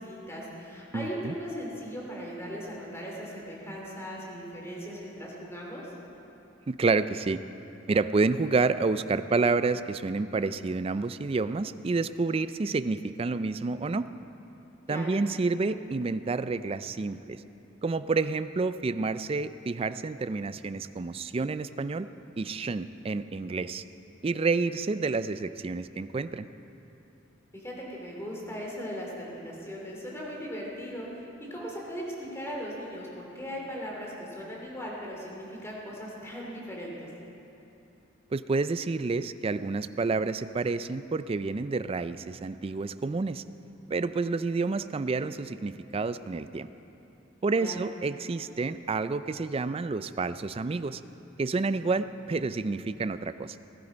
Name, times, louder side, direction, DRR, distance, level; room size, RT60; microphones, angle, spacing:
voice 1, 0.0-5.8 14.9-15.1 27.5-31.2 31.5-37.1 47.6-47.8, equal, 15° left, -3 dB, 2.9 m, -38 dB
voice 2, 0.9-1.3 6.7-7.4 7.9-14.1 14.9-17.4 17.8-22.1 22.4-23.8 24.2-26.5 38.3-43.4 43.9-46.7 47.4-51.0 51.4-53.6, right 3 dB, 30° right, 13 dB, 0.4 m, -29 dB
19.0 x 12.0 x 5.1 m, 2.9 s
head